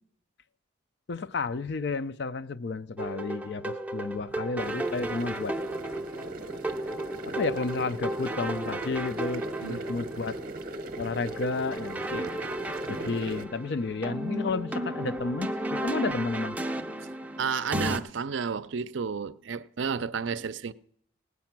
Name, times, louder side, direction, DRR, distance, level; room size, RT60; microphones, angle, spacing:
voice 1, 1.1-5.5 7.2-10.4 11.0-12.3 12.9-16.6, left 3 dB, 55° left, 0.5 m, -32 dB
sound 1, 3.0-18.0, right 1 dB, 10° right, 0.5 m, -34 dB
sound 2, 4.6-13.5, right 1 dB, 45° right, 0.8 m, -38 dB
voice 2, 17.4-20.7, right 6 dB, 70° right, 0.5 m, -31 dB
17.5 x 8.3 x 5.9 m
head